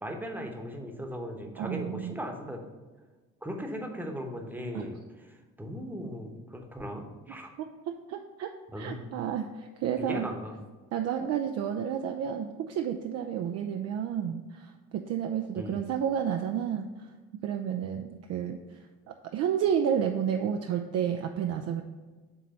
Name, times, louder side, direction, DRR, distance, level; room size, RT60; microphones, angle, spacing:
voice 1, 0.0-2.6 3.4-7.5 8.7-9.0 10.0-10.6 15.5-15.8, equal, 5° right, 3 dB, 1.0 m, -38 dB
voice 2, 1.6-2.2 4.7-4.8 7.6-10.4 10.9-17.1 17.4-21.8, right 8 dB, 40° right, 5 dB, 0.5 m, -31 dB
6.4 x 3.8 x 5.5 m, 1.3 s
figure-of-eight pair, 45°, 40 cm